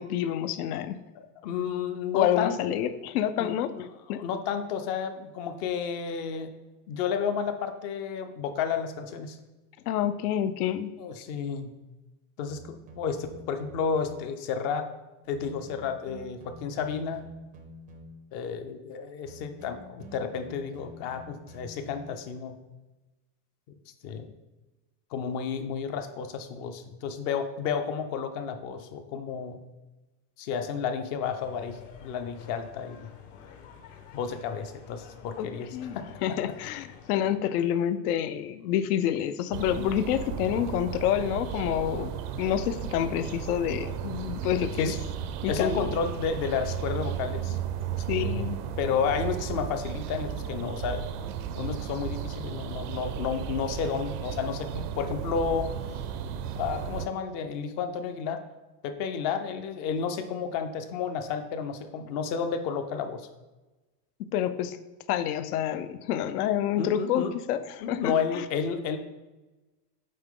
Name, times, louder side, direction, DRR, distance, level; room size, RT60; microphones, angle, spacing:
voice 1, 0.0-1.0 2.1-3.7 4.1-4.2 9.9-10.9 35.4-44.9 45.4-45.8 48.1-48.6 64.3-64.8 65.1-68.4, left 10 dB, 75° left, 13 dB, 0.6 m, -28 dB
voice 2, 1.2-2.6 3.4-6.5 6.9-9.4 11.0-11.8 12.4-14.9 15.3-17.3 18.3-22.6 24.0-24.3 25.1-29.6 30.4-33.1 34.1-36.5 44.8-45.0 45.5-47.6 48.1-48.5 48.8-51.0 51.6-55.7 56.6-58.4 58.8-63.3 66.8-67.3 67.8-69.0, left 6 dB, 35° left, 8 dB, 0.5 m, -31 dB
sound 1, 12.5-14.4 15.3-18.4 19.3-22.4, equal, 20° right, 0.5 m, -48 dB
sound 2, 31.2-37.4, left 8 dB, 55° left, 0.9 m, -50 dB
sound 3, 39.5-57.1, right 9 dB, 75° right, 0.7 m, -34 dB
8.5 x 3.8 x 3.7 m, 1.1 s
supercardioid pair, 155°, 46 cm